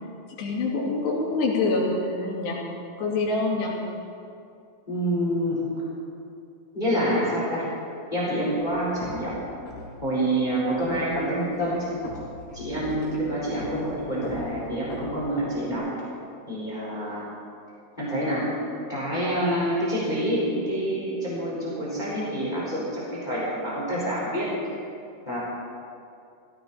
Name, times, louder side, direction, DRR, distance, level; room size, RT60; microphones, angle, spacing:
voice 1, 0.4-2.6 3.0-3.8, left 3 dB, 85° left, -3 dB, 4.7 m, -25 dB
voice 2, 4.9-5.6 6.7-7.7 8.1-9.4 10.0-11.9 12.5-15.9 16.5-17.2 18.0-18.5 18.9-24.5 25.3-25.5, right 1 dB, 10° left, -7 dB, 4.3 m, -27 dB
sound 1, 8.6-15.7, left 2 dB, 45° left, 4.4 m, -40 dB
17.0 x 16.5 x 4.3 m, 2.5 s
omnidirectional pair, 4.7 m